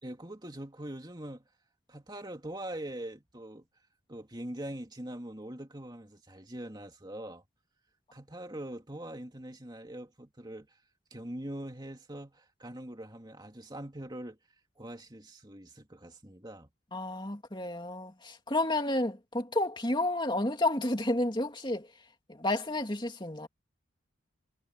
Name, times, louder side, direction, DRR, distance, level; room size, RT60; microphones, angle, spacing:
voice 1, 0.0-1.5 1.9-3.7 4.1-7.4 8.1-10.8 11.1-14.4 14.8-16.7, right 1 dB, 20° right, 2.6 m, -42 dB
voice 2, 16.9-21.9 22.4-23.5, left 1 dB, 20° left, 2.6 m, -31 dB
head